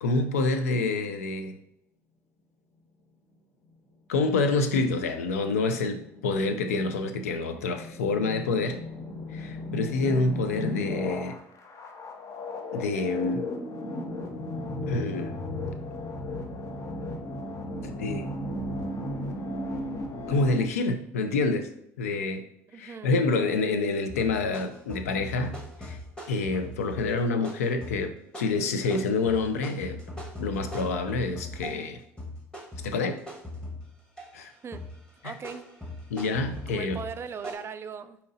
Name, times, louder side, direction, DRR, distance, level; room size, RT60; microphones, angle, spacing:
voice 1, 0.0-1.6 4.1-8.8 9.3-11.4 12.7-13.4 14.9-15.3 17.9-18.3 20.3-21.7 22.0-22.4 22.7-26.0 26.3-30.0 30.4-32.0 32.8-33.2 34.3-34.5 35.2-35.3 36.1-37.0, left 3 dB, 85° left, 8 dB, 0.4 m, -27 dB
sound 1, 5.1-20.7, left 1 dB, 40° left, 0.7 m, -35 dB
voice 2, 22.7-23.1 34.6-34.9 35.2-35.6 36.7-38.2, right 6 dB, 30° right, 11 dB, 0.3 m, -38 dB
sound 2, 24.1-31.9 32.2-34.4 34.7-37.5, left 1 dB, 10° left, 1.3 m, -40 dB
4.8 x 2.8 x 2.6 m, 0.77 s
hypercardioid pair, 70°, 8 cm